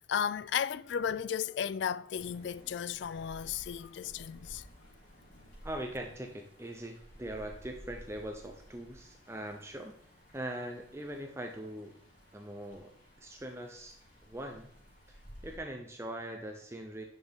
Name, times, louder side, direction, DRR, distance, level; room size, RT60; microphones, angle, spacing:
voice 1, 0.0-4.7, left 8 dB, 65° left, 0.3 m, -34 dB
sound 1, 2.1-15.6, equal, 40° left, 3.4 m, -55 dB
voice 2, 5.6-10.0 10.3-12.0 12.3-14.0 14.2-14.7 15.1-15.2 15.4-17.0, right 1 dB, 15° right, 0.7 m, -41 dB
9.8 x 6.5 x 3.6 m
head